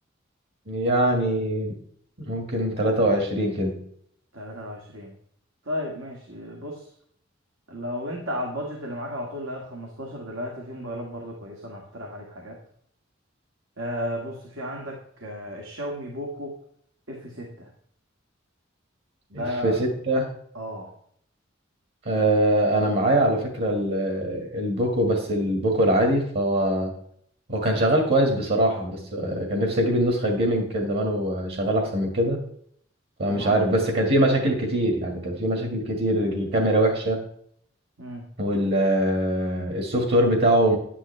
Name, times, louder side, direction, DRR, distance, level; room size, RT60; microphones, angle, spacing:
voice 1, 0.7-1.7 2.3-3.8 19.3-20.2 22.1-26.9 27.5-32.4 33.2-37.2 38.4-40.8, right 1 dB, 55° right, 2 dB, 2.0 m, -23 dB
voice 2, 4.3-5.1 5.6-6.9 7.7-12.6 13.8-16.6 17.1-17.7 19.3-19.8 20.5-20.9 33.3-33.6 38.0-38.3, equal, 80° right, 0 dB, 2.0 m, -34 dB
11.0 x 9.9 x 3.3 m, 0.65 s
head